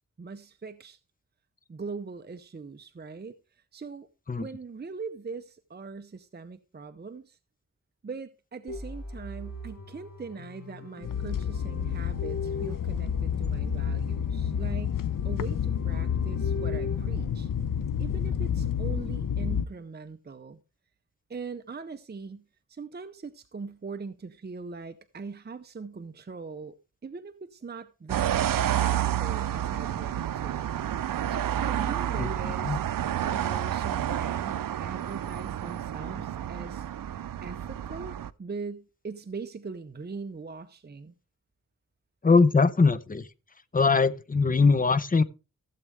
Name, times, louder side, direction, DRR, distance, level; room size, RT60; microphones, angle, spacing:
voice 1, 0.2-1.0 1.7-4.1 4.4-7.4 8.0-17.5 18.0-20.6 21.3-26.8 27.0-30.7 31.3-32.8 33.1-36.9 37.4-41.1, right 4 dB, 30° right, 0.6 m, -41 dB
sound 1, 8.7-17.3, left 2 dB, 55° left, 4.4 m, -40 dB
sound 2, 11.0-19.7, left 8 dB, 75° left, 0.7 m, -29 dB
sound 3, 28.1-38.3, right 11 dB, 85° right, 0.5 m, -30 dB
voice 2, 42.2-43.3 43.7-45.2, left 4 dB, 25° left, 0.6 m, -21 dB
15.5 x 7.4 x 3.3 m
wide cardioid pair, 90°, 32 cm